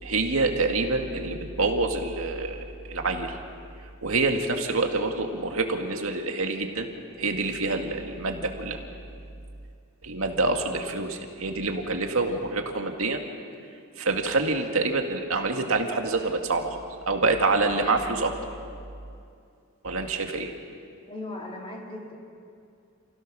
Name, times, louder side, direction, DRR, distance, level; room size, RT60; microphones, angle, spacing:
voice 1, 0.0-3.4 4.0-6.9 7.2-8.8 10.0-13.2 14.0-18.3 19.8-20.5, right 3 dB, 75° right, 3 dB, 2.0 m, -26 dB
voice 2, 21.1-22.1, left 2 dB, 25° left, -2 dB, 3.6 m, -37 dB
28.5 x 16.5 x 6.3 m, 2.4 s
head